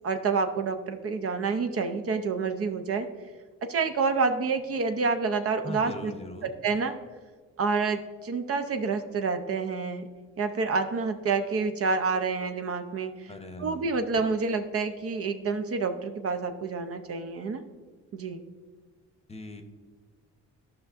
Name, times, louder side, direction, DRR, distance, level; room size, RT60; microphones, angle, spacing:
voice 1, 0.0-3.1 3.6-6.1 6.6-7.0 7.6-10.1 10.4-13.3 13.6-17.6 18.1-18.4, right 4 dB, 50° right, 8 dB, 0.6 m, -28 dB
voice 2, 5.6-6.5 13.3-13.8 19.3-19.6, left 1 dB, 20° left, 6 dB, 0.8 m, -40 dB
12.0 x 5.7 x 2.5 m, 1.5 s
cardioid pair, 90°, 30 cm